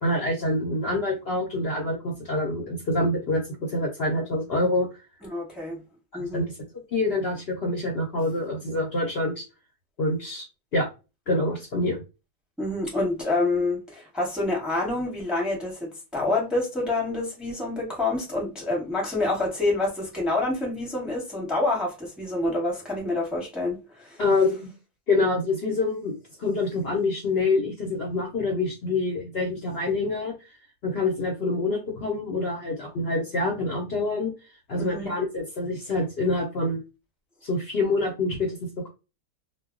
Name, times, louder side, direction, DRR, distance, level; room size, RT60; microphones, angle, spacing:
voice 1, 0.0-4.9 6.1-6.5 6.9-9.4 10.0-10.4 10.7-10.9 11.3-12.0 24.2-24.7 25.1-30.3 30.8-34.3 34.7-36.8 37.4-38.6, left 2 dB, 55° left, 0.8 m, -26 dB
voice 2, 5.3-5.8 6.1-6.4 12.6-24.2 34.8-35.1, left 2 dB, ahead, 0.9 m, -27 dB
2.2 x 2.2 x 3.6 m
omnidirectional pair, 1.5 m